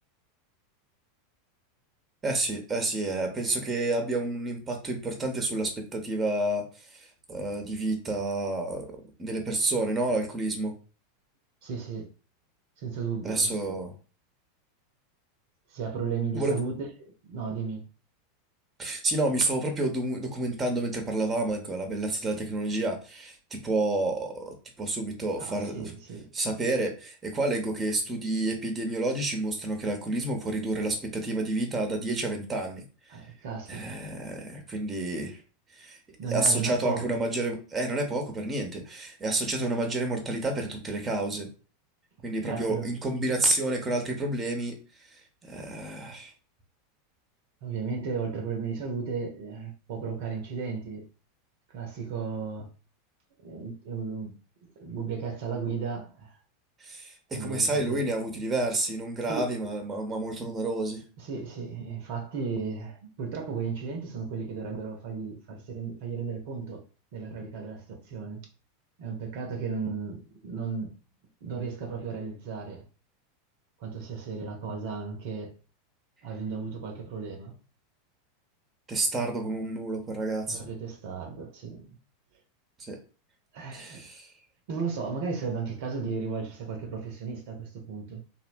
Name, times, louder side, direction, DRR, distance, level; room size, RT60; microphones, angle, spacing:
voice 1, 2.2-6.7 6.9-10.7 13.2-13.9 16.3-16.6 18.8-25.9 26.3-32.8 33.7-35.4 35.7-36.0 36.3-41.5 42.2-44.8 45.1-46.3 56.8-61.0 78.9-80.6 82.9-83.0 83.7-84.3, right 2 dB, 20° right, 0.7 m, -29 dB
voice 2, 11.6-12.1 12.8-13.5 15.7-17.8 25.4-26.3 33.1-34.0 36.2-37.2 42.5-42.9 47.6-51.1 51.7-52.7 53.4-54.3 54.8-56.3 57.3-58.1 59.3-59.5 61.2-66.8 67.1-68.5 69.0-70.9 71.4-72.8 73.8-75.6 76.2-77.6 80.5-82.0 83.5-84.0 84.7-88.2, right 5 dB, 60° right, 0.6 m, -34 dB
2.7 x 2.1 x 2.5 m
figure-of-eight pair, 85°, 0 cm